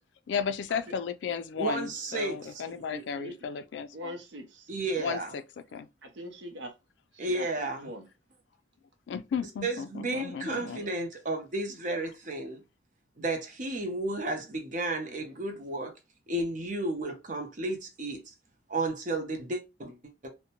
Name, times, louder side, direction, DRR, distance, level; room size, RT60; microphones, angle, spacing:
voice 1, 0.3-4.1 5.0-5.4 5.7-5.9 9.1-10.9, left 6 dB, 80° left, 0.3 m, -34 dB
voice 2, 1.6-2.4 4.7-5.3 7.2-7.9 9.6-12.6 13.2-15.9 16.3-18.2 18.7-20.3, right 2 dB, 45° right, 0.6 m, -32 dB
voice 3, 2.7-3.3 3.9-4.7 6.0-6.7 7.1-8.1 10.7-10.9 15.1-15.4, equal, 80° right, 0.6 m, -43 dB
2.6 x 2.1 x 2.8 m
head